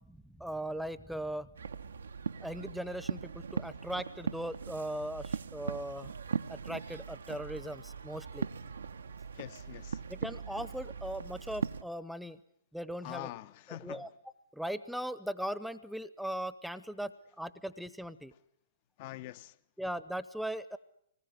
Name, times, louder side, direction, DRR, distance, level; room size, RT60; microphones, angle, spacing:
voice 1, 0.1-1.5 2.4-6.1 6.5-8.5 10.1-12.4 12.7-13.3 13.8-14.1 14.5-17.1 17.4-18.3 19.8-20.8, right 1 dB, ahead, 1.0 m, -39 dB
sound 1, 1.5-11.8, right 5 dB, 70° right, 1.0 m, -40 dB
voice 2, 9.3-10.0 13.0-14.1 19.0-19.6, left 16 dB, 45° left, 0.9 m, -44 dB
25.5 x 20.0 x 9.5 m
figure-of-eight pair, 110°, 0 cm